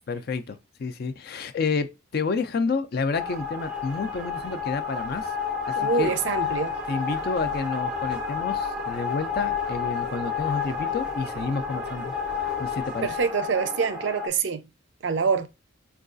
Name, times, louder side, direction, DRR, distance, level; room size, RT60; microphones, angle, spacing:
voice 1, 0.1-5.3 5.7-6.1 6.9-12.1 12.6-13.1, left 4 dB, 50° left, 0.4 m, -30 dB
sound 1, 3.1-14.3, left 6 dB, 5° right, 0.6 m, -30 dB
voice 2, 5.8-6.8 13.0-14.6 15.0-15.5, right 5 dB, 60° right, 0.4 m, -25 dB
4.6 x 2.3 x 2.4 m
head